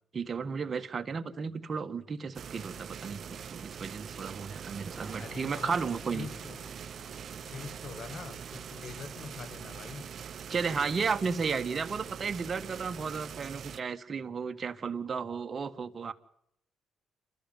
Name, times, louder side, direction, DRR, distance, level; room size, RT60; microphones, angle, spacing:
voice 1, 0.1-6.3 10.5-16.1, right 5 dB, 40° right, 1.6 m, -34 dB
sound 1, 2.3-13.8, right 8 dB, 55° right, 0.8 m, -43 dB
sound 2, 4.9-10.8, right 1 dB, 5° left, 6.4 m, -56 dB
voice 2, 5.2-5.8 6.1-6.7 7.4-10.1, left 6 dB, 50° left, 1.1 m, -44 dB
28.0 x 13.5 x 9.2 m
cardioid pair, 90°, 0 cm